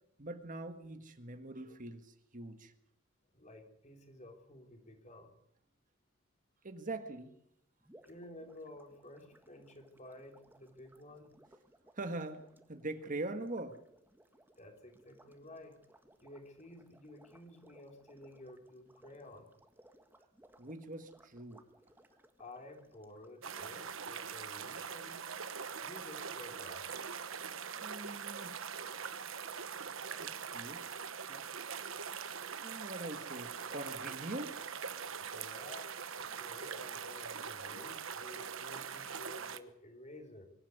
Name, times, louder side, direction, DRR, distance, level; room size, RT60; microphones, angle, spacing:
voice 1, 0.2-2.7 6.6-7.3 11.9-13.8 20.6-21.7 27.8-28.6 30.1-31.7 32.6-34.7, right 2 dB, 40° right, 8 dB, 1.6 m, -43 dB
voice 2, 3.3-5.3 8.0-11.4 14.6-15.8 16.2-19.5 22.4-25.3 25.8-26.9 35.2-35.9 36.2-40.5, left 1 dB, 35° left, 4 dB, 3.6 m, -53 dB
sound 1, 7.8-24.1, right 1 dB, 10° right, 1.6 m, -65 dB
sound 2, 23.4-39.6, right 6 dB, 75° right, 1.2 m, -42 dB
23.5 x 12.0 x 9.4 m, 0.74 s
head